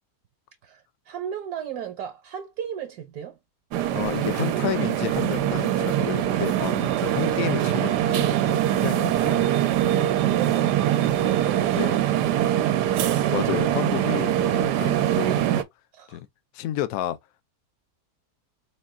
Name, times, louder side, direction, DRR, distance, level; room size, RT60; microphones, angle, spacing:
voice 1, 0.6-3.4 9.9-13.4 15.9-16.2, right 9 dB, 70° right, 1.3 m, -35 dB
sound 1, 3.7-15.6, right 12 dB, 90° right, 1.2 m, -23 dB
voice 2, 3.9-9.6 11.7-12.0 13.3-15.6 16.1-16.3 16.5-17.2, left 13 dB, 70° left, 0.9 m, -31 dB
4.3 x 2.4 x 3.5 m
omnidirectional pair, 1.7 m